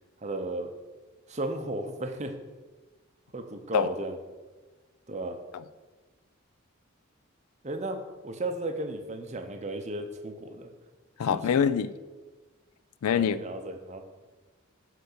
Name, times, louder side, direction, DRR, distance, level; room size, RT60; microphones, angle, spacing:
voice 1, 0.2-0.7 1.3-2.3 3.3-4.2 5.1-5.4 7.6-10.7 11.3-11.4 13.1-14.0, right 2 dB, 30° right, 6 dB, 0.6 m, -34 dB
voice 2, 11.2-11.9 13.0-13.4, left 7 dB, 90° left, 15 dB, 0.4 m, -25 dB
7.0 x 4.0 x 6.5 m, 1.3 s
head